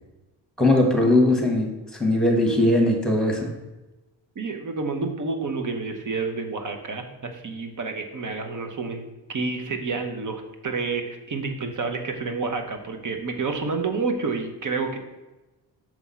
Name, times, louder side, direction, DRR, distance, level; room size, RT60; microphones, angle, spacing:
voice 1, 0.6-1.7 2.0-3.5, left 1 dB, ahead, 1 dB, 1.4 m, -19 dB
voice 2, 4.4-15.0, right 4 dB, 45° right, 5 dB, 1.0 m, -29 dB
6.1 x 3.5 x 5.6 m, 1.1 s
cardioid pair, 100°, 44 cm